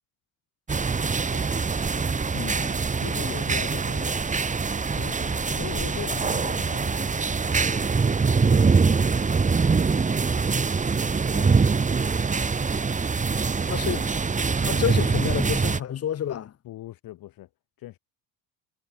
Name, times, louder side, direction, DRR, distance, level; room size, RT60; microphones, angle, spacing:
sound 1, 0.7-15.8, right 4 dB, 20° right, 3.4 m, -24 dB
voice 1, 2.3-2.8 13.7-14.1 14.6-16.5, left 10 dB, 40° left, 2.5 m, -29 dB
voice 2, 3.0-4.2 4.9-7.3 11.3-11.5 16.6-17.5 17.8-18.0, left 15 dB, 65° left, 7.0 m, -40 dB
cardioid pair, 140°, 37 cm